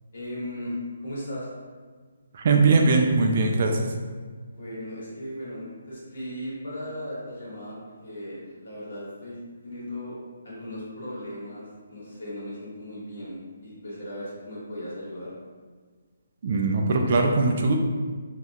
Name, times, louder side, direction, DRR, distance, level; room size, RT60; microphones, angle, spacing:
voice 1, 0.1-1.5 4.5-10.2 10.4-13.3 13.6-15.3, left 1 dB, 65° left, -7 dB, 1.4 m, -37 dB
voice 2, 2.3-3.9 16.4-17.8, right 3 dB, 40° right, 2 dB, 0.3 m, -21 dB
2.7 x 2.2 x 3.4 m, 1.5 s
hypercardioid pair, 165°, 0 cm